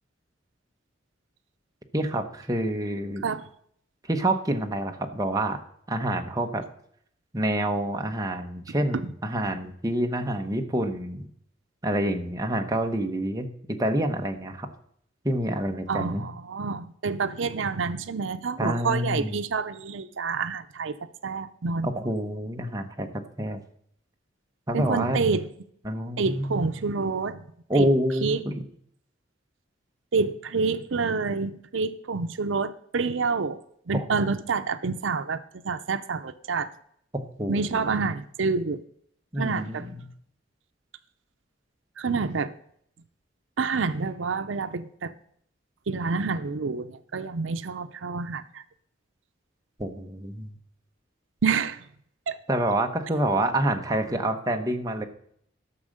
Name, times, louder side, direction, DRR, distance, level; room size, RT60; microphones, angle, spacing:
voice 1, 1.9-3.2 4.1-5.6 5.9-6.6 7.3-11.3 11.8-14.7 15.2-16.2 18.6-19.4 21.8-23.6 24.7-25.2 25.8-26.7 27.7-28.7 33.9-34.3 37.1-38.0 39.3-40.0 49.8-50.6 52.5-55.1, right 1 dB, 20° right, 0.9 m, -27 dB
voice 2, 15.9-21.0 21.2-21.9 24.7-25.5 26.2-27.4 27.7-27.9 28.2-28.4 30.1-33.6 33.9-36.7 37.5-38.8 39.4-39.9 42.0-42.5 43.6-45.1 45.9-48.6 51.4-51.8 52.3-52.4, right 4 dB, 85° right, 0.6 m, -28 dB
12.5 x 6.3 x 6.5 m
head